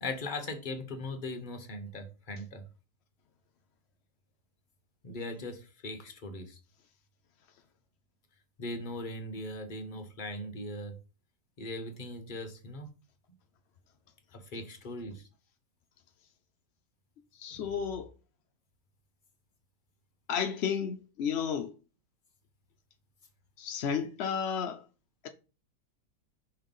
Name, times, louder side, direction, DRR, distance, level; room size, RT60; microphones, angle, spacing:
voice 1, 0.0-2.6 5.0-6.6 8.6-10.9 11.6-12.9 14.3-15.2 17.5-17.7, left 2 dB, 35° left, 1.0 m, -39 dB
voice 2, 17.4-18.1 20.3-21.7 23.6-24.8, left 7 dB, 80° left, 0.6 m, -32 dB
5.7 x 3.3 x 5.3 m
omnidirectional pair, 1.7 m